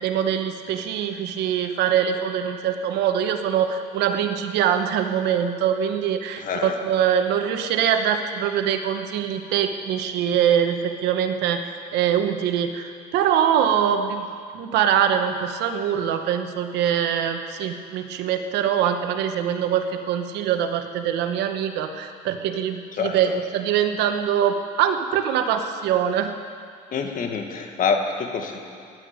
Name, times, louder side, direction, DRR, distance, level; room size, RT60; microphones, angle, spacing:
voice 1, 0.0-14.3 14.5-26.3, right 9 dB, 85° right, 7 dB, 1.1 m, -23 dB
voice 2, 6.4-6.8 23.0-23.4 26.9-28.6, left 5 dB, 50° left, 4 dB, 1.6 m, -26 dB
16.5 x 11.0 x 5.1 m, 2.2 s
cardioid pair, 110°, 17 cm